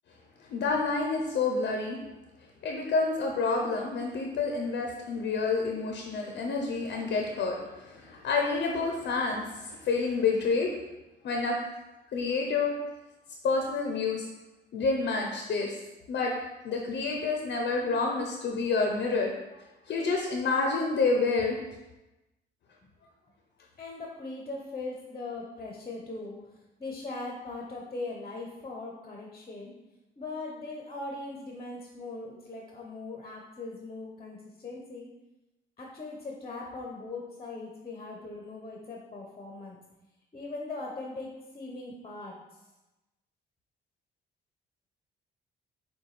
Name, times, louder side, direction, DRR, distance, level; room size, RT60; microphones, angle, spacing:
voice 1, 0.5-2.0 2.6-10.7 11.2-11.6 12.1-12.7 13.4-14.2 14.7-15.7 16.1-16.3 16.6-19.3 19.9-21.6, left 4 dB, 60° left, 1 dB, 0.6 m, -28 dB
voice 2, 23.8-26.4 26.8-29.7 30.2-35.1 35.8-39.8 40.3-41.3 41.5-42.4, left 3 dB, 30° left, -1 dB, 0.7 m, -40 dB
6.6 x 2.3 x 3.2 m, 1.0 s
cardioid pair, 90°, 20 cm